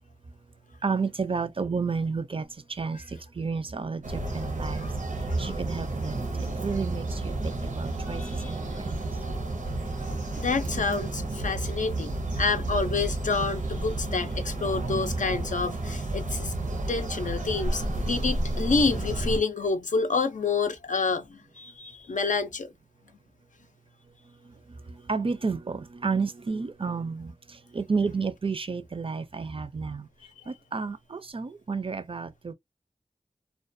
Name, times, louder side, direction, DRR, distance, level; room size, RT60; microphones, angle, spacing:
voice 1, 0.8-4.9 5.2-8.9 24.4-30.1 30.5-32.5, right 4 dB, 45° right, 0.4 m, -31 dB
sound 1, 4.0-19.4, right 2 dB, 90° right, 0.7 m, -31 dB
voice 2, 8.2-8.5 10.1-16.5 16.9-22.7, left 4 dB, 80° left, 0.4 m, -28 dB
2.3 x 2.2 x 2.5 m
wide cardioid pair, 60°, 13 cm